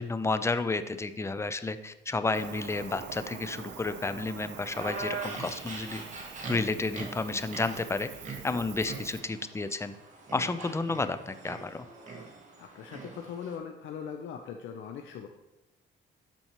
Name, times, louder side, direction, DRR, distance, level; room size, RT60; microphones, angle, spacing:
voice 1, 0.0-6.0 6.5-8.1 8.4-9.9 10.3-11.8, left 3 dB, 15° left, 11 dB, 0.5 m, -31 dB
Cricket, 2.3-9.2, right 7 dB, 60° right, 0.6 m, -45 dB
sound 1, 4.7-13.6, right 3 dB, 35° right, 1.9 m, -42 dB
sound 2, 6.0-9.0 9.5-10.4, right 1 dB, 5° right, 1.0 m, -53 dB
voice 2, 12.6-15.3, left 7 dB, 75° left, 4 dB, 0.6 m, -40 dB
12.0 x 4.3 x 3.0 m, 1.0 s
cardioid pair, 90°, 20 cm